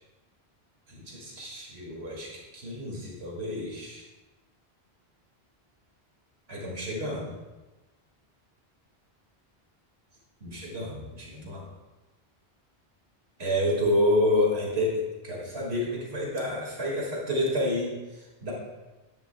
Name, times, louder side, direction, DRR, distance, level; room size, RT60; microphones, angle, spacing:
voice 1, 0.9-4.0 6.5-7.3 10.4-11.6 13.4-18.5, left 1 dB, 75° right, -3 dB, 2.5 m, -29 dB
12.0 x 10.5 x 2.3 m, 1.1 s
omnidirectional pair, 1.1 m